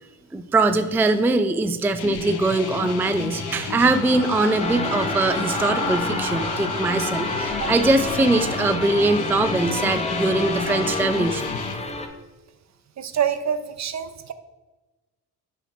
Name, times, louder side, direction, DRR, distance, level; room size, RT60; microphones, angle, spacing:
voice 1, 0.3-11.6, right 2 dB, 5° right, 9 dB, 0.4 m, -22 dB
sound 1, 2.0-11.7, left 6 dB, 80° left, 0.9 m, -32 dB
sound 2, 2.2-11.0, left 1 dB, 60° left, 1.9 m, -33 dB
sound 3, 4.6-12.1, left 3 dB, 15° left, 0.9 m, -30 dB
voice 2, 13.0-14.3, right 8 dB, 45° right, 11 dB, 0.6 m, -26 dB
5.4 x 4.6 x 4.1 m, 1.2 s
supercardioid pair, 55°, 38 cm